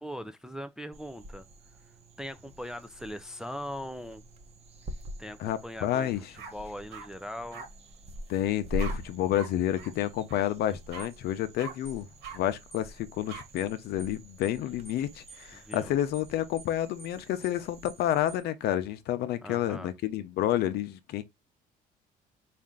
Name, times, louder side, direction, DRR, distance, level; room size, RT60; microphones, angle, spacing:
voice 1, 0.0-1.5 2.2-4.2 5.2-7.7 15.5-15.9 19.4-19.9, equal, 5° right, 0.3 m, -40 dB
sound 1, 0.9-18.4, right 1 dB, 40° right, 0.9 m, -45 dB
voice 2, 5.4-6.2 8.3-12.1 12.3-21.2, left 12 dB, 75° left, 0.6 m, -30 dB
sound 2, 5.9-6.0 6.4-7.1 7.5-7.7 8.8-8.9 9.3-9.5 9.7-9.9 10.3-10.4 10.9-11.1 11.6-11.7 12.2-12.4 13.3-13.4, right 6 dB, 85° right, 1.5 m, -42 dB
sound 3, 11.0-11.2 11.8-12.0 12.7-12.9 13.6-13.7 14.0-14.2 14.4-14.6 14.8-15.0 15.3-15.4 15.7-15.9 16.1-16.3 16.6-16.7 17.0-17.2 17.4-17.6 17.8-18.0 18.3-18.4, right 4 dB, 25° left, 0.7 m, -49 dB
4.2 x 2.5 x 3.6 m
cardioid pair, 110°, 17 cm